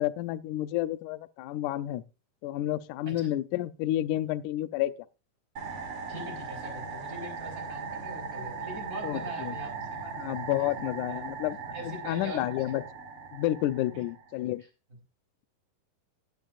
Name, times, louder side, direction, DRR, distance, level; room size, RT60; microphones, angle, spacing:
voice 1, 0.0-2.0 2.4-4.9 9.0-9.5 10.2-11.6 11.9-12.8 13.3-14.6, left 14 dB, 75° left, 1.9 m, -30 dB
sound 1, 5.6-14.4, right 4 dB, 40° right, 3.4 m, -39 dB
voice 2, 6.1-9.7 10.0-10.3 10.6-10.7 11.1-11.2 11.7-12.8 13.9-14.0 14.6-14.7, right 1 dB, 20° right, 4.7 m, -42 dB
16.5 x 11.5 x 2.5 m
omnidirectional pair, 4.1 m